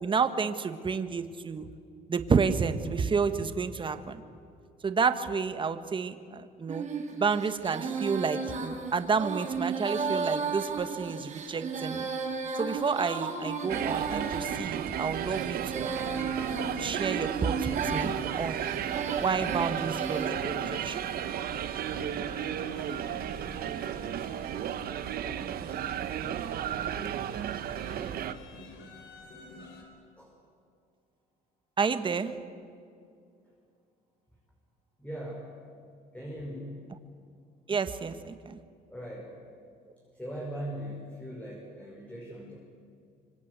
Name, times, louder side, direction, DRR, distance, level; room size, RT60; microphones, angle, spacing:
voice 1, 0.0-1.7 2.1-4.2 4.8-6.9 7.2-12.1 12.6-15.9 16.8-18.6 19.2-21.0 31.8-32.3 37.7-38.6, right 5 dB, 30° right, 10 dB, 1.6 m, -30 dB
Female singing, 6.7-20.3, right 5 dB, 45° right, 6.4 m, -34 dB
sound 1, 13.7-28.3, right 10 dB, 60° right, 1.3 m, -34 dB
sound 2, 16.4-29.8, left 1 dB, 85° left, 5.3 m, -48 dB
voice 2, 35.0-35.5 36.1-36.8 38.9-39.4 40.1-42.6, equal, 10° left, -2 dB, 5.5 m, -40 dB
25.5 x 25.5 x 8.2 m, 2.3 s
cardioid pair, 110°, 17 cm